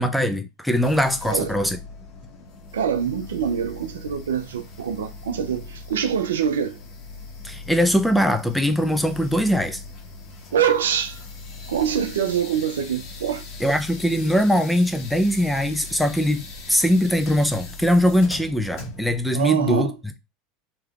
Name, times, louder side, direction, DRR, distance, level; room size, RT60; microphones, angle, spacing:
voice 1, 0.0-1.8 7.4-9.8 13.6-19.9, equal, ahead, 0.5 m, -21 dB
sound 1, 0.8-19.2, left 3 dB, 55° left, 1.3 m, -40 dB
voice 2, 1.2-1.6 2.7-6.8 10.5-11.2 11.6-13.4 19.3-19.9, right 8 dB, 85° right, 0.4 m, -24 dB
3.2 x 2.9 x 2.4 m
hypercardioid pair, 90°, 0 cm